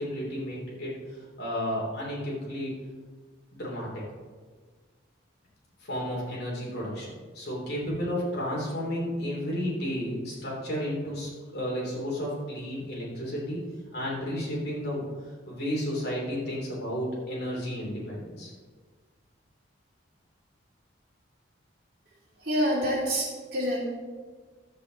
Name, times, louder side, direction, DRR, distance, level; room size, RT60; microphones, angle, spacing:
voice 1, 0.0-2.7 3.5-4.0 5.8-13.6 13.9-15.0 15.4-18.5, equal, 50° left, -4 dB, 3.2 m, -32 dB
voice 2, 22.4-23.9, equal, 50° right, -5 dB, 3.1 m, -27 dB
11.5 x 8.1 x 4.0 m, 1.5 s
head